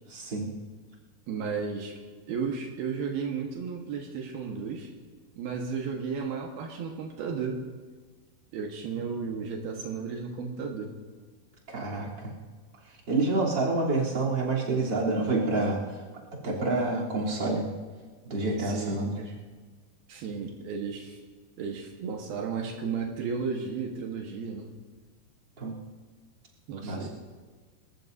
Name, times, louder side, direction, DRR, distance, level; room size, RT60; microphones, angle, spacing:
voice 1, 0.1-0.5 11.7-12.3 13.1-15.8 16.4-17.6 18.3-19.1 25.6-25.7 26.8-27.1, right 2 dB, 30° right, -5 dB, 3.6 m, -28 dB
voice 2, 1.3-2.0 2.3-4.9 5.4-7.6 8.5-10.9 18.6-19.0 20.1-21.2 21.6-24.7 26.7-27.1, right 5 dB, 75° right, 1 dB, 3.2 m, -34 dB
29.5 x 14.5 x 2.7 m, 1.4 s
omnidirectional pair, 4.4 m